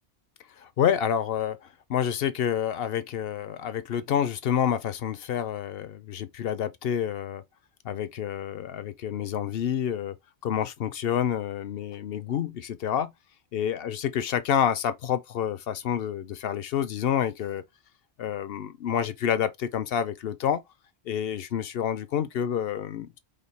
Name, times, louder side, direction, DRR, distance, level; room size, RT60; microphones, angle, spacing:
voice 1, 0.6-7.4 7.8-10.2 10.4-13.1 13.5-17.6 18.2-20.6 21.1-23.2, left 9 dB, 65° left, 0.7 m, -28 dB
5.1 x 2.3 x 4.1 m
omnidirectional pair, 1.1 m